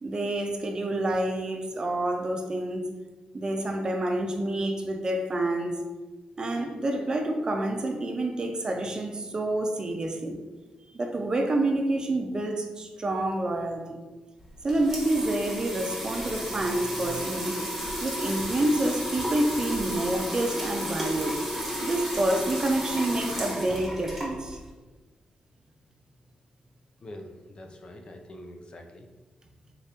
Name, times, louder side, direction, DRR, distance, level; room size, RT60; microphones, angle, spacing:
voice 1, 0.0-2.9 3.3-5.8 6.4-10.4 10.9-14.0 14.6-17.6 18.0-21.4 21.8-24.6, right 1 dB, 30° right, 4 dB, 0.5 m, -28 dB
sound 1, 14.4-24.7, equal, ahead, 1.1 m, -33 dB
voice 2, 27.0-29.1, left 1 dB, 40° left, 3 dB, 0.4 m, -44 dB
3.6 x 2.9 x 3.4 m, 1.2 s
wide cardioid pair, 120°, 3 cm